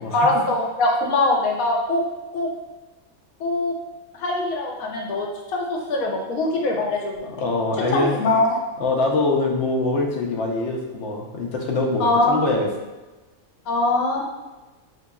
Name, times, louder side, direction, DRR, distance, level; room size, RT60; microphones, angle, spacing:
voice 1, 0.1-2.0 2.3-2.5 3.4-3.7 4.2-7.5 7.9-8.6 12.0-12.4 13.7-14.2, left 2 dB, 85° left, 0 dB, 1.1 m, -22 dB
voice 2, 7.2-8.1 8.8-12.7, left 2 dB, 65° left, 0 dB, 0.8 m, -23 dB
4.1 x 2.8 x 2.2 m, 1.1 s
omnidirectional pair, 1.4 m